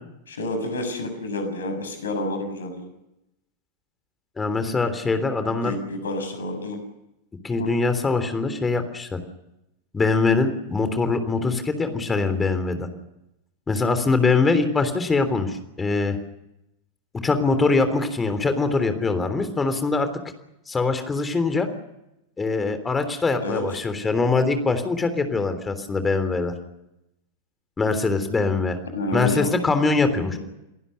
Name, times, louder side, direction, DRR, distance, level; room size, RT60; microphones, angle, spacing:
voice 1, 0.3-2.8 5.5-6.8 7.6-7.7 23.4-23.6 28.9-29.5 30.3-30.4, left 2 dB, 65° left, 8 dB, 7.0 m, -29 dB
voice 2, 4.4-5.8 7.4-9.2 9.9-12.9 13.7-16.2 17.2-20.1 20.7-21.7 22.4-26.5 27.8-28.8 29.1-30.4, left 3 dB, 15° left, 9 dB, 3.4 m, -23 dB
29.0 x 19.0 x 6.7 m, 0.88 s
figure-of-eight pair, 90°, 0 cm